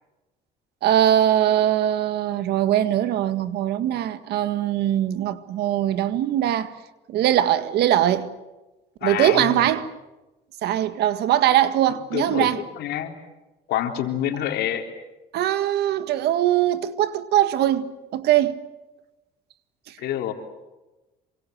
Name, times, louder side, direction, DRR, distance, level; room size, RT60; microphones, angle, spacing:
voice 1, 0.8-6.7 7.1-8.3 9.0-9.9 10.6-12.6 15.3-18.6, right 12 dB, 75° right, 1.8 m, -21 dB
voice 2, 9.0-9.7 12.1-12.5 12.8-13.2 13.7-14.9 20.0-20.3, left 11 dB, 75° left, 3.8 m, -27 dB
27.5 x 25.5 x 8.0 m
cardioid pair, 110°, 17 cm